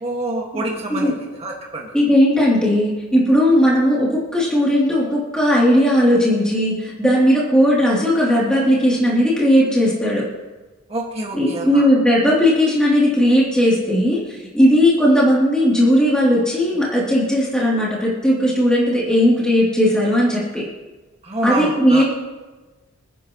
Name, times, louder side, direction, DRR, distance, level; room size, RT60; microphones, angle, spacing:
voice 1, 0.0-1.9 10.9-11.9 21.2-22.0, right 1 dB, 30° right, -3 dB, 2.0 m, -27 dB
voice 2, 1.9-10.3 11.3-14.2 14.5-20.6 21.4-22.0, equal, 5° left, -7 dB, 3.2 m, -16 dB
27.5 x 9.8 x 3.2 m, 1.2 s
head